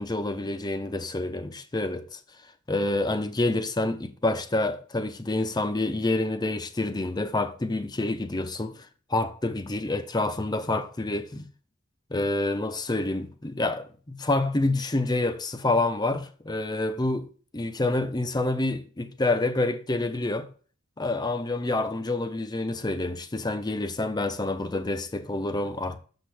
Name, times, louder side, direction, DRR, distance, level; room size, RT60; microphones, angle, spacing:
voice 1, 0.0-2.2 2.7-11.5 12.1-17.3 17.5-20.5 21.0-26.0, left 2 dB, 20° left, 0.6 m, -28 dB
6.4 x 6.2 x 3.3 m
head